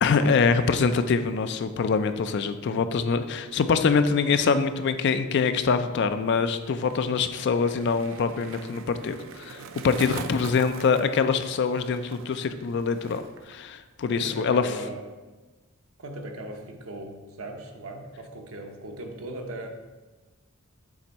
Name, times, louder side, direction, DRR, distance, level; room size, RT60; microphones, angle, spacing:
voice 1, 0.0-14.7, left 5 dB, 55° left, 10 dB, 0.4 m, -24 dB
Skateboard, 6.0-13.6 13.8-14.3, right 5 dB, 65° right, 0.4 m, -43 dB
voice 2, 14.1-15.0 16.0-19.7, right 1 dB, 85° right, 4 dB, 0.8 m, -38 dB
7.3 x 3.4 x 4.1 m, 1.2 s
head